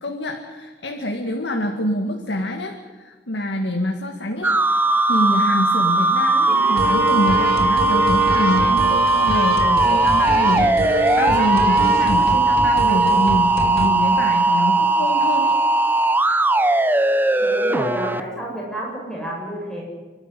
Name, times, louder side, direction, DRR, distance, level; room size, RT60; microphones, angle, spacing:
voice 1, 0.0-15.6, left 1 dB, 80° left, 2 dB, 2.1 m, -26 dB
sound 1, 4.4-18.2, right 2 dB, 10° right, 0.7 m, -18 dB
sound 2, 6.5-13.9, right 2 dB, 60° right, 2.7 m, -26 dB
voice 2, 17.4-19.8, equal, 5° left, -3 dB, 7.5 m, -30 dB
29.5 x 12.5 x 9.9 m, 1.3 s
head